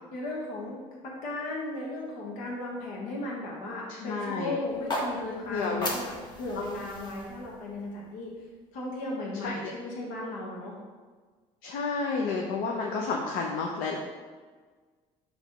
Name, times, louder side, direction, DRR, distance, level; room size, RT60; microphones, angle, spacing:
voice 1, 0.1-0.8 1.0-6.1 6.4-8.3 8.7-10.7, left 2 dB, 70° left, -3 dB, 1.3 m, -36 dB
voice 2, 3.9-4.6 5.5-5.9 9.4-9.7 11.6-14.0, left 4 dB, 90° left, 0 dB, 0.7 m, -31 dB
sound 1, 4.7-8.8, left 1 dB, 35° left, 1.0 m, -37 dB
6.5 x 3.3 x 5.2 m, 1.5 s
cardioid pair, 155°, 14 cm